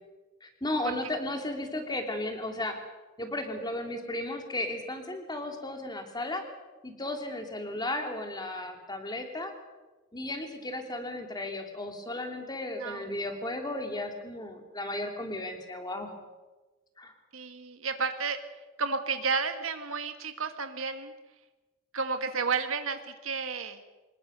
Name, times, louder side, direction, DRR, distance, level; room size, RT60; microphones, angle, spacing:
voice 1, 0.4-2.8 3.2-6.4 6.8-9.5 10.1-16.1 17.0-17.1, left 1 dB, 20° left, 4 dB, 3.0 m, -35 dB
voice 2, 17.3-18.4 18.8-21.1 21.9-23.8, right 5 dB, 80° right, 7 dB, 1.6 m, -32 dB
25.0 x 20.5 x 6.7 m, 1.2 s
head